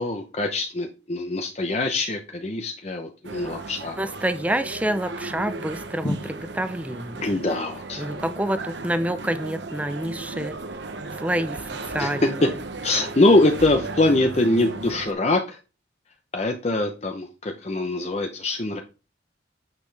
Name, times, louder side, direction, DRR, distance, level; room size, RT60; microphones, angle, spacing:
voice 1, 0.0-4.0 6.0-6.2 7.2-8.2 12.0-12.5 12.8-15.6 16.3-18.8, left 2 dB, 35° left, 4 dB, 0.7 m, -23 dB
sound 1, 3.2-15.1, right 3 dB, 60° right, 0.8 m, -36 dB
voice 2, 4.0-7.4 8.0-10.6 11.2-12.4, right 1 dB, 5° right, 11 dB, 0.5 m, -28 dB
8.9 x 5.8 x 3.4 m, 0.33 s
head